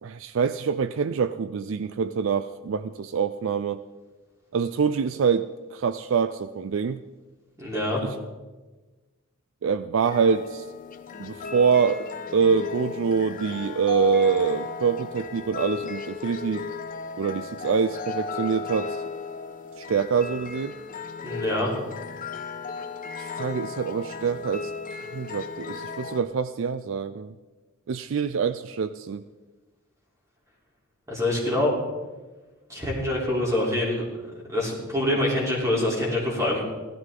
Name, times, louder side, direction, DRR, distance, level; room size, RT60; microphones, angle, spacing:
voice 1, 0.0-3.8 4.5-7.0 8.0-8.2 9.6-10.6 11.2-12.1 12.3-16.7 17.2-19.0 19.8-20.7 23.2-24.7 25.1-27.3 27.9-29.2, right 6 dB, 60° right, 13 dB, 0.4 m, -25 dB
voice 2, 7.6-8.0 21.2-21.7 31.1-31.8 32.7-34.0 34.5-36.6, left 1 dB, 15° right, -4 dB, 3.4 m, -25 dB
sound 1, 10.0-26.2, left 4 dB, 40° left, 0.9 m, -35 dB
16.5 x 12.5 x 3.8 m, 1.2 s
head